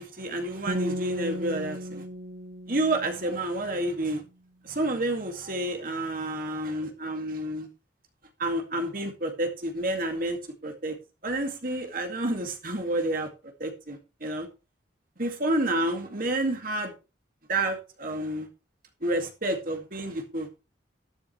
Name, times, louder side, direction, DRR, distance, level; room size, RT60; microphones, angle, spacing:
voice 1, 0.0-2.0 2.7-4.2 4.6-7.7 8.4-11.0 11.2-13.3 13.6-14.5 15.2-16.9 17.5-18.5 19.0-20.5, right 1 dB, 50° right, 2.2 m, -29 dB
sound 1, 0.7-3.9, right 1 dB, 85° right, 1.9 m, -36 dB
12.5 x 11.5 x 3.3 m
head